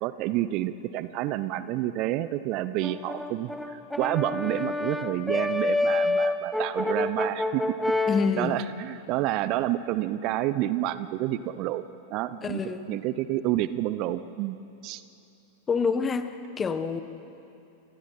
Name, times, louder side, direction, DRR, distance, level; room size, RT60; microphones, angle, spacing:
voice 1, 0.0-7.9 8.3-11.8 12.1-12.6 12.9-14.6 14.8-15.0, right 14 dB, 40° right, 15 dB, 0.8 m, -29 dB
Brass instrument, 2.8-8.3, left 2 dB, ahead, 1.3 m, -28 dB
voice 2, 8.1-8.6 12.4-12.9 15.7-17.0, left 5 dB, 20° left, 10 dB, 1.5 m, -27 dB
30.0 x 26.0 x 5.9 m, 2.7 s
figure-of-eight pair, 90°, 0 cm